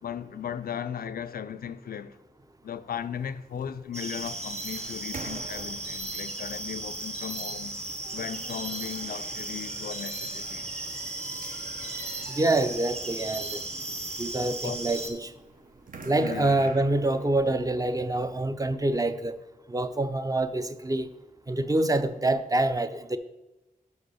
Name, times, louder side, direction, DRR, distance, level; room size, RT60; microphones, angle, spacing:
voice 1, 0.0-2.2 2.6-7.7 8.1-10.7 14.6-14.8 16.2-16.6 18.2-18.3, left 8 dB, 85° left, 0.4 m, -37 dB
sound 1, 3.0-18.4, right 4 dB, 65° right, 0.8 m, -47 dB
sound 2, 3.9-15.1, right 2 dB, 45° right, 1.3 m, -36 dB
voice 2, 12.3-13.6 14.2-15.3 16.0-19.4 19.7-21.1 21.5-23.2, right 2 dB, 25° right, 0.5 m, -26 dB
6.1 x 5.1 x 6.3 m
wide cardioid pair, 70°, 15 cm